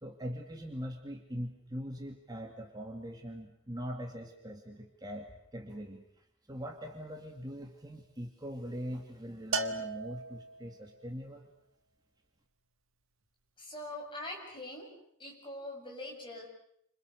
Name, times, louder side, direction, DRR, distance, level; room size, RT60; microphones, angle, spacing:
voice 1, 0.0-11.5, equal, 20° right, 2 dB, 2.3 m, -42 dB
Bell, 9.5-10.9, right 3 dB, 75° right, 1.9 m, -36 dB
voice 2, 13.6-14.9 15.2-16.5, left 1 dB, 25° left, 0 dB, 7.9 m, -43 dB
29.5 x 26.5 x 6.6 m, 0.72 s
head